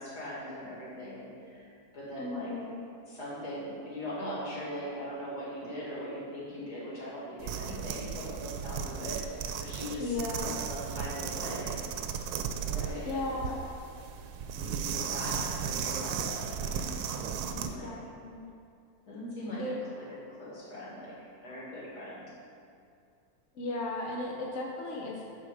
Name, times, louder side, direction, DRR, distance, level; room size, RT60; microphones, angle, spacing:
voice 1, 0.0-1.7 1.9-2.6 3.1-11.8 12.6-13.4 14.5-17.9 19.1-19.6 20.0-20.1 20.4-21.1 21.4-22.3, equal, 90° left, -7 dB, 2.7 m, -40 dB
voice 2, 2.2-2.8 10.0-10.5 13.0-13.6 17.5-18.5 19.6-19.7 23.5-25.2, left 2 dB, 55° left, -1 dB, 1.1 m, -36 dB
sound 1, 7.4-17.8, right 7 dB, 80° right, 1.1 m, -35 dB
11.5 x 4.3 x 4.9 m, 2.4 s
omnidirectional pair, 1.7 m